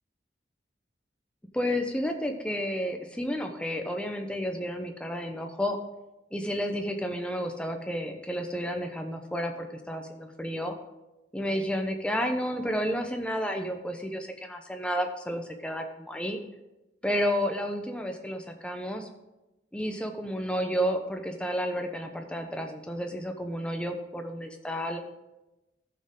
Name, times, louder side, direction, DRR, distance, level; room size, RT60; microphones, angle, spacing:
voice 1, 1.5-5.8 6.3-10.7 11.3-16.4 17.0-19.1 19.7-25.0, equal, 5° left, 4 dB, 0.9 m, -31 dB
14.0 x 6.6 x 3.9 m, 0.99 s
head